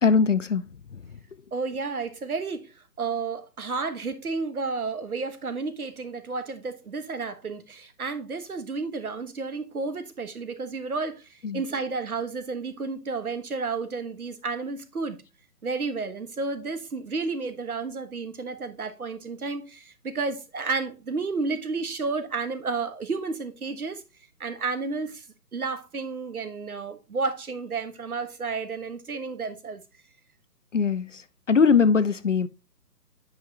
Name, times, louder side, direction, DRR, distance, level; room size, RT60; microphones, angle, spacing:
voice 1, 0.0-1.0 11.4-11.6 30.7-32.5, left 5 dB, 50° left, 0.5 m, -22 dB
voice 2, 1.5-2.7 3.0-15.2 15.6-24.0 24.4-25.3 25.5-29.8, right 4 dB, 60° right, 1.3 m, -31 dB
8.8 x 5.6 x 2.8 m
figure-of-eight pair, 140°, 49 cm